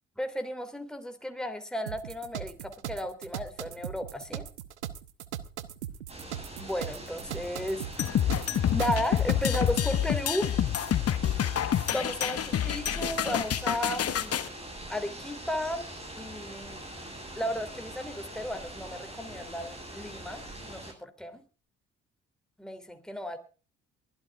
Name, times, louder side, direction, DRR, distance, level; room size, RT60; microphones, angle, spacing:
voice 1, 0.2-4.4 6.6-8.5 8.7-10.5 11.9-14.5 14.9-16.8 17.3-21.4 22.6-23.4, equal, ahead, 6 dB, 3.1 m, -34 dB
sound 1, 1.9-9.8, right 11 dB, 85° right, 0.9 m, -39 dB
sound 2, 6.1-20.9, right 1 dB, 20° right, 7.6 m, -43 dB
sound 3, 8.0-14.5, left 10 dB, 45° left, 1.4 m, -28 dB
23.0 x 15.5 x 2.5 m, 0.35 s
hypercardioid pair, 50°, 33 cm